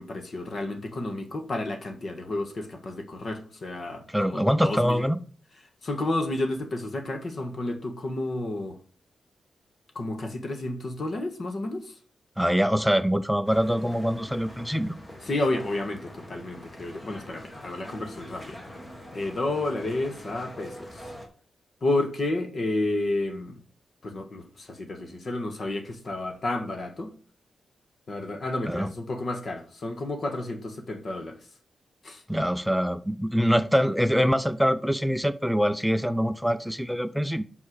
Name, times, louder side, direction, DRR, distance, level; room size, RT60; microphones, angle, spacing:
voice 1, 0.0-5.0 5.8-8.8 9.9-11.9 15.2-18.6 19.1-21.0 21.8-23.6 24.0-27.1 28.1-31.3 32.0-32.2, left 2 dB, 40° left, 1.3 m, -31 dB
voice 2, 4.1-5.2 12.4-15.0 28.7-28.9 32.3-37.4, equal, ahead, 0.4 m, -24 dB
sound 1, 13.5-21.3, equal, 20° left, 1.4 m, -44 dB
5.6 x 5.4 x 6.3 m
wide cardioid pair, 155°, 0 cm